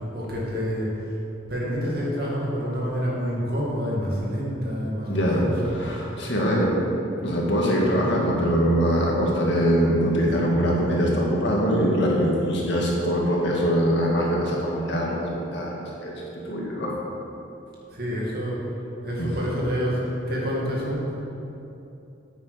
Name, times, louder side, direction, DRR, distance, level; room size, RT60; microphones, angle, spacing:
voice 1, 0.1-0.9 1.5-6.2 6.4-6.5 17.9-18.6 19.0-21.2, equal, 55° right, -5 dB, 2.3 m, -28 dB
voice 2, 5.1-6.8 7.2-16.9 19.2-19.3, equal, 70° left, -2 dB, 1.9 m, -23 dB
9.1 x 8.6 x 5.1 m, 2.9 s
head